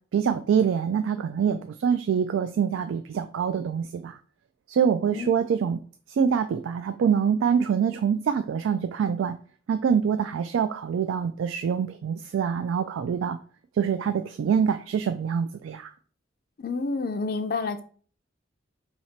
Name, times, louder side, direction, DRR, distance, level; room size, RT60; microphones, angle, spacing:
voice 1, 0.1-4.2 4.7-5.8 6.1-9.4 9.7-13.4 13.7-15.9, right 7 dB, 85° right, 9 dB, 0.3 m, -25 dB
voice 2, 16.6-17.8, left 3 dB, 50° left, 9 dB, 0.4 m, -29 dB
2.8 x 2.8 x 4.4 m, 0.43 s
head